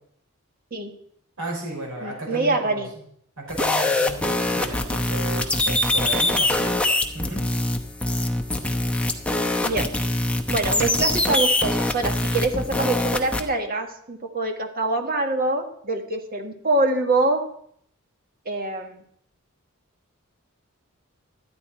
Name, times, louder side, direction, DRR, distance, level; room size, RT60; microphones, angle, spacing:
voice 1, 1.4-3.0 3.4-6.8 7.1-7.5, right 2 dB, 80° right, -2 dB, 5.3 m, -34 dB
voice 2, 2.0-2.9 9.6-9.9 10.5-17.4 18.4-19.0, right 2 dB, 45° right, 4 dB, 1.6 m, -25 dB
sound 1, 3.5-13.4, left 2 dB, 5° left, 0.8 m, -23 dB
13.0 x 9.9 x 4.4 m, 0.66 s
head